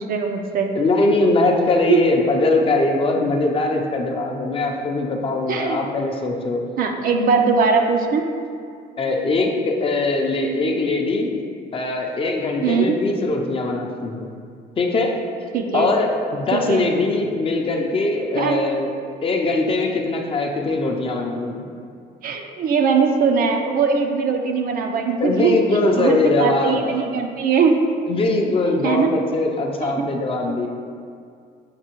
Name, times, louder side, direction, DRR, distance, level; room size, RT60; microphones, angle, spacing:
voice 1, 0.0-0.7 1.9-2.0 5.5-5.8 6.8-8.2 12.6-13.0 15.5-15.9 16.5-16.8 18.4-18.6 22.2-25.6 26.0-27.8 28.8-29.1 29.8-30.1, right 5 dB, 55° right, 4 dB, 0.5 m, -20 dB
voice 2, 0.7-6.6 9.0-11.3 11.7-14.3 14.8-15.1 15.7-18.9 19.2-21.7 25.2-26.8 28.1-30.7, left 2 dB, 35° left, 1 dB, 0.5 m, -21 dB
6.6 x 2.7 x 2.9 m, 2.3 s
cardioid pair, 110°, 17 cm